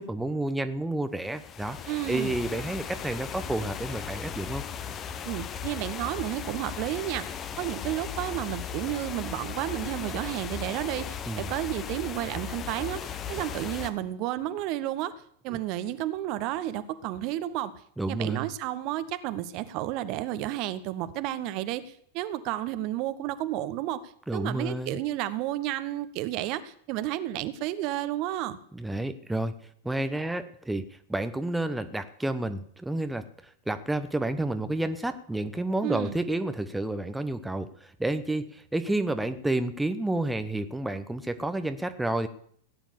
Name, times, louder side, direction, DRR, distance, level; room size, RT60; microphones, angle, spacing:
voice 1, 0.0-4.6 11.3-11.5 15.5-15.6 18.0-18.5 24.3-25.0 28.7-29.5 29.8-33.2 33.7-42.3, right 2 dB, 5° right, 9 dB, 0.9 m, -30 dB
sound 1, 1.2-13.9, left 7 dB, 25° left, 1.1 m, -37 dB
voice 2, 1.9-2.4 5.2-15.1 15.4-17.7 18.1-24.0 24.3-28.6 35.8-36.2, right 13 dB, 40° right, 13 dB, 1.1 m, -32 dB
16.5 x 9.3 x 7.1 m, 0.63 s
figure-of-eight pair, 90°, 0 cm